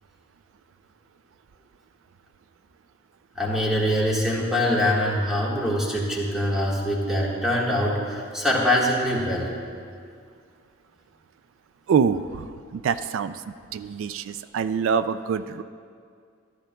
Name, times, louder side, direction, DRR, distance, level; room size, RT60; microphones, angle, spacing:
voice 1, 3.3-9.5, equal, ahead, -4 dB, 1.5 m, -23 dB
voice 2, 11.9-13.4 13.7-15.6, right 6 dB, 70° right, 12 dB, 0.3 m, -25 dB
14.0 x 13.0 x 2.3 m, 2.2 s
head